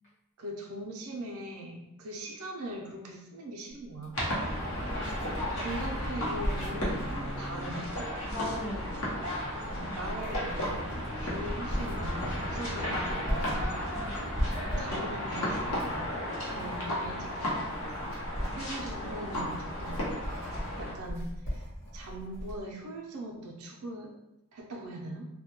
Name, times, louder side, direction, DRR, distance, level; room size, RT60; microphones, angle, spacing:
voice 1, 0.4-4.3 5.5-8.1 9.6-13.7 14.6-16.2 16.5-17.8 18.5-20.1 20.4-21.7 21.9-24.1 24.5-25.3, right 1 dB, 70° right, -1 dB, 0.4 m, -41 dB
Writing, 3.9-22.6, equal, 50° left, 1.1 m, -38 dB
sound 1, 4.1-20.9, equal, 70° left, 0.7 m, -34 dB
sound 2, 4.8-10.5, right 1 dB, 85° left, 1.1 m, -47 dB
voice 2, 4.8-5.6 8.3-8.9 9.5-10.0 13.9-14.2 16.4-16.7 18.5-18.6 20.8-21.0, left 1 dB, 35° left, -8 dB, 0.4 m, -42 dB
2.1 x 2.1 x 2.8 m, 0.90 s
head